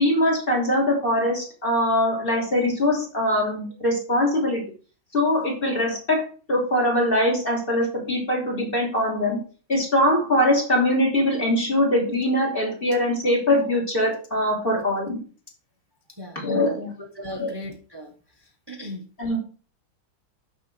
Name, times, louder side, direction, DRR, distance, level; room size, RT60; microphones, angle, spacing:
voice 1, 0.0-4.6 5.1-9.4 9.7-15.2 16.3-16.9 17.4-17.5 19.2-19.4, left 1 dB, 25° left, -1 dB, 3.3 m, -22 dB
voice 2, 17.0-18.1 18.7-19.0, equal, 15° right, 1 dB, 0.9 m, -37 dB
12.0 x 4.9 x 4.4 m, 0.38 s
omnidirectional pair, 2.2 m